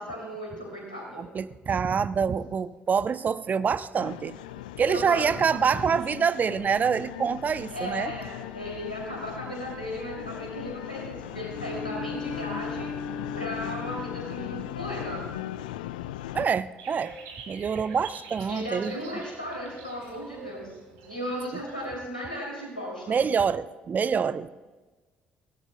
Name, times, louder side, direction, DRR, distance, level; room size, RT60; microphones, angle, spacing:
voice 1, 0.0-1.3 4.9-5.3 7.7-13.0 13.3-15.3 18.5-20.7 21.1-23.2, equal, 90° left, -2 dB, 2.7 m, -36 dB
voice 2, 1.2-4.4 4.8-8.1 16.3-17.1 17.5-18.9 23.1-24.5, right 6 dB, 35° right, 15 dB, 0.6 m, -26 dB
sound 1, 4.0-16.5, left 13 dB, 70° left, 0.3 m, -38 dB
Bowed string instrument, 11.4-14.6, left 4 dB, 35° left, 0.7 m, -37 dB
sound 2, 16.8-21.9, right 4 dB, 65° right, 2.0 m, -45 dB
21.0 x 16.0 x 2.2 m, 1.3 s
figure-of-eight pair, 45°, 5 cm